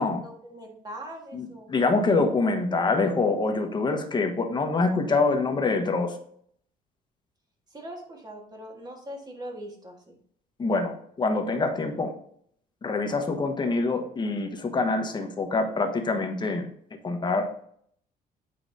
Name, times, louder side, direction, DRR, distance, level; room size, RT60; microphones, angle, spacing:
voice 1, 0.0-2.1 7.7-10.1, right 1 dB, 25° right, 1 dB, 1.6 m, -42 dB
voice 2, 1.3-6.1 10.6-12.1 12.8-16.7 17.0-17.5, left 3 dB, 25° left, 5 dB, 1.1 m, -25 dB
8.2 x 4.8 x 2.7 m, 0.64 s
cardioid pair, 110°, 17 cm